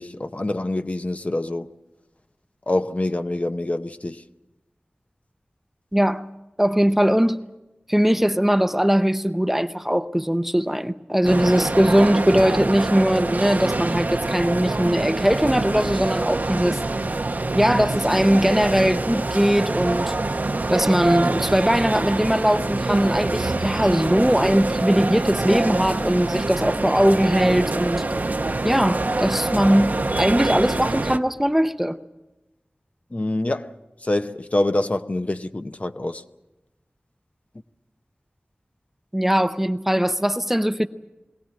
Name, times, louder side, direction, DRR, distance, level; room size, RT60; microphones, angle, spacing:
voice 1, 0.0-1.7 2.7-4.2 33.1-33.7 34.0-36.2, left 1 dB, 40° left, 0.8 m, -25 dB
voice 2, 5.9-6.2 6.6-7.4 7.9-16.8 17.5-20.1 20.7-28.0 28.6-32.0 39.1-40.9, equal, 5° right, 0.7 m, -20 dB
sound 1, 11.2-31.2, right 2 dB, 50° right, 0.8 m, -25 dB
22.5 x 17.5 x 8.8 m
wide cardioid pair, 70°, 4 cm